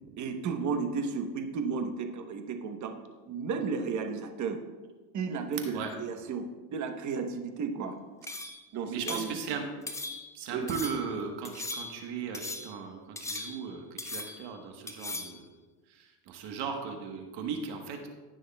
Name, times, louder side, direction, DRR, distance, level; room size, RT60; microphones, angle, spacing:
voice 1, 0.2-2.9 3.3-4.6 5.1-6.4 6.7-8.0 8.7-9.6 10.5-10.7, right 5 dB, 35° right, 6 dB, 1.1 m, -33 dB
sound 1, 8.3-8.7 9.1-9.4 9.9-10.4 10.7-11.1 11.4-12.1 12.3-12.8 13.2-13.7 14.0-14.5 14.9-15.4, left 2 dB, 5° left, 0.5 m, -39 dB
voice 2, 8.9-9.6 10.3-15.4 15.9-18.1, right 6 dB, 55° right, 4 dB, 1.3 m, -37 dB
17.5 x 6.3 x 2.3 m, 1.3 s
supercardioid pair, 115°, 48 cm